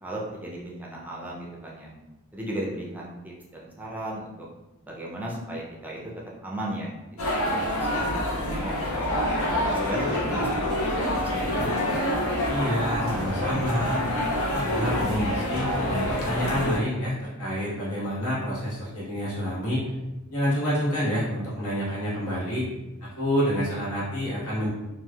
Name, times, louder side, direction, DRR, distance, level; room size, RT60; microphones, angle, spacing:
voice 1, 0.0-1.9 2.3-4.5 4.8-6.0 6.4-6.9 7.2-7.4 7.7-8.3 8.6-9.1 9.6-11.7, right 1 dB, 10° right, -4 dB, 0.4 m, -36 dB
sound 1, 7.2-16.8, left 1 dB, 70° left, 0.6 m, -27 dB
voice 2, 12.5-14.0 14.5-19.8 20.3-22.7 23.0-24.7, equal, 90° left, -8 dB, 1.4 m, -28 dB
3.1 x 2.4 x 2.3 m, 1.0 s
head